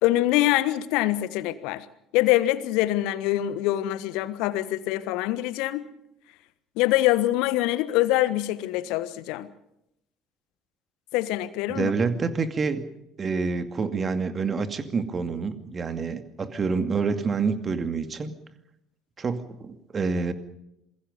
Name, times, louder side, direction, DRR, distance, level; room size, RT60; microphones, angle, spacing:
voice 1, 0.0-1.8 2.1-5.8 6.8-9.5 11.1-11.9, left 15 dB, 60° left, 1.3 m, -24 dB
voice 2, 11.7-12.8 13.2-18.3 19.2-20.3, right 4 dB, 30° right, 2.4 m, -27 dB
27.5 x 21.5 x 5.3 m
figure-of-eight pair, 55°, 0 cm